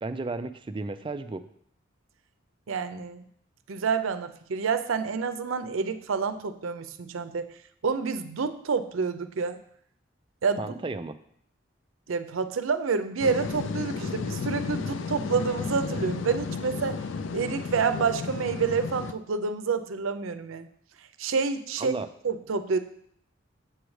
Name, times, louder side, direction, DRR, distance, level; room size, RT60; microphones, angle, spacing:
voice 1, 0.0-1.4 10.6-11.2 21.8-22.1, right 3 dB, 25° right, 9 dB, 0.3 m, -33 dB
voice 2, 2.7-3.2 3.7-7.5 7.8-9.6 10.4-10.7 12.1-17.0 17.3-20.7 21.2-22.0 22.2-22.8, right 5 dB, 85° right, 10 dB, 0.5 m, -28 dB
sound 1, 13.2-19.1, left 5 dB, 70° left, 0.4 m, -33 dB
7.7 x 3.2 x 6.2 m, 0.65 s
head